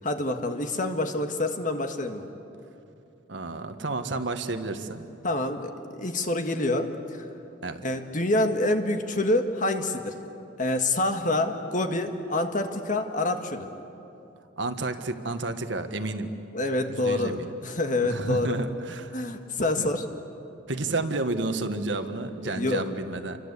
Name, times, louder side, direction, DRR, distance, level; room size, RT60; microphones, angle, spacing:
voice 1, 0.0-2.3 5.2-7.2 7.8-10.1 10.6-13.7 16.5-18.6 19.1-20.0 22.4-22.8, left 2 dB, 40° left, 6 dB, 1.7 m, -27 dB
voice 2, 3.3-5.1 7.6-7.8 14.6-16.3 16.9-17.5 18.0-19.1 19.8-19.9 20.7-23.4, right 2 dB, 70° right, 8 dB, 1.5 m, -31 dB
29.0 x 24.5 x 8.3 m, 2.8 s
head